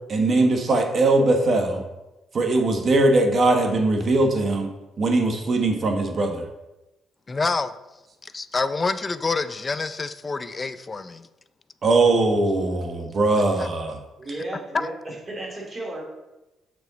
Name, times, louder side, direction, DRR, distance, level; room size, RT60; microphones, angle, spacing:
voice 1, 0.1-1.8 2.3-4.7 5.0-6.4 11.8-14.0, right 2 dB, 50° right, 4 dB, 1.2 m, -20 dB
voice 2, 7.3-7.7 8.2-11.3 13.6-13.7 14.7-14.9, left 4 dB, 30° left, 12 dB, 0.4 m, -27 dB
voice 3, 14.2-16.0, right 2 dB, 30° right, -2 dB, 2.5 m, -34 dB
6.8 x 4.8 x 4.0 m, 1.0 s
cardioid pair, 90°, 0 cm